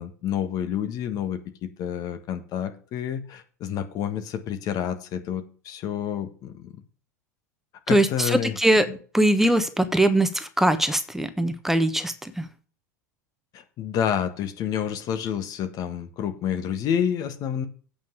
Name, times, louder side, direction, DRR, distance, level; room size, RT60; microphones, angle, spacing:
voice 1, 0.0-6.7 7.9-8.6 8.9-9.0 13.5-17.7, left 9 dB, 45° left, 8 dB, 1.5 m, -29 dB
voice 2, 7.9-8.9 9.1-12.5, right 1 dB, 5° right, 9 dB, 1.2 m, -21 dB
8.7 x 5.7 x 8.1 m, 0.41 s
figure-of-eight pair, 80°, 9 cm